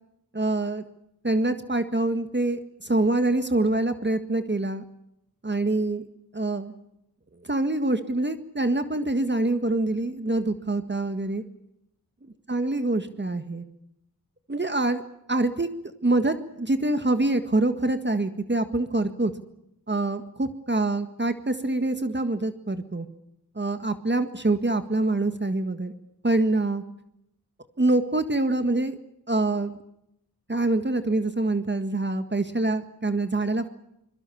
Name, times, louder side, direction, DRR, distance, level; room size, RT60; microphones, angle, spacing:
voice 1, 0.3-0.8 1.2-4.8 5.4-6.0 6.3-6.7 7.4-11.4 12.5-13.6 14.5-15.0 15.3-15.7 16.0-19.3 19.9-23.1 23.6-25.9 26.2-26.8 27.8-29.0 29.3-29.7 30.5-33.7, right 2 dB, 30° right, 9 dB, 1.8 m, -25 dB
25.5 x 22.5 x 7.1 m, 0.80 s
cardioid pair, 50°, 37 cm